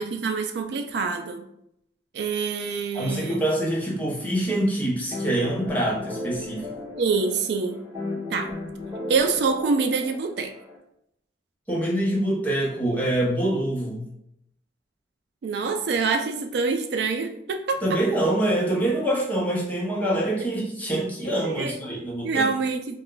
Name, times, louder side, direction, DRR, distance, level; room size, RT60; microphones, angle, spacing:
voice 1, 0.0-1.4 2.1-3.4 7.0-7.8 8.3-8.5 9.1-10.5 15.4-18.0 21.4-22.0 22.2-23.0, right 4 dB, 65° right, 5 dB, 0.3 m, -26 dB
voice 2, 2.9-6.7 11.7-14.1 17.8-22.5, right 1 dB, 10° left, -4 dB, 0.7 m, -25 dB
sound 1, 5.1-10.8, left 2 dB, 20° right, 1.1 m, -35 dB
2.4 x 2.2 x 3.7 m, 0.77 s
head